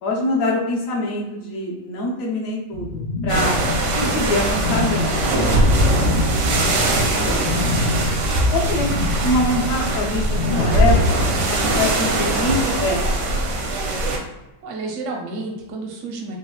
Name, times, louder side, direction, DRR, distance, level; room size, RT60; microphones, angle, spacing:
voice 1, 0.0-3.6 3.9-5.1 8.5-8.9 9.2-13.6, left 2 dB, 60° left, -2 dB, 1.0 m, -24 dB
sound 1, 2.7-11.3, left 2 dB, 85° left, 1.3 m, -27 dB
sound 2, 3.3-14.2, right 1 dB, 85° right, 1.3 m, -21 dB
voice 2, 5.8-7.6 14.6-16.4, right 2 dB, 65° right, 1 dB, 0.7 m, -32 dB
4.1 x 2.1 x 2.2 m, 1.0 s
omnidirectional pair, 1.9 m